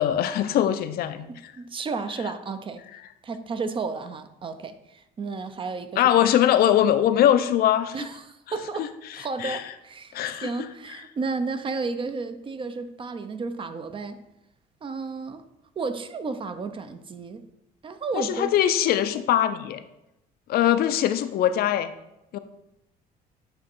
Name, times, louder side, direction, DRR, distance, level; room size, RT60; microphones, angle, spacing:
voice 1, 0.0-1.5 6.0-7.9 8.5-8.9 9.4-9.6 10.1-10.7 18.1-19.8 20.5-21.9 22.3-22.4, left 11 dB, 65° left, 11 dB, 0.5 m, -22 dB
voice 2, 1.2-2.8 3.2-6.1 7.9-10.2 10.4-14.2 14.8-15.4 15.8-17.5 17.8-18.5, right 4 dB, 30° right, 10 dB, 0.5 m, -32 dB
8.6 x 3.0 x 4.4 m, 0.87 s
cardioid pair, 110°, 17 cm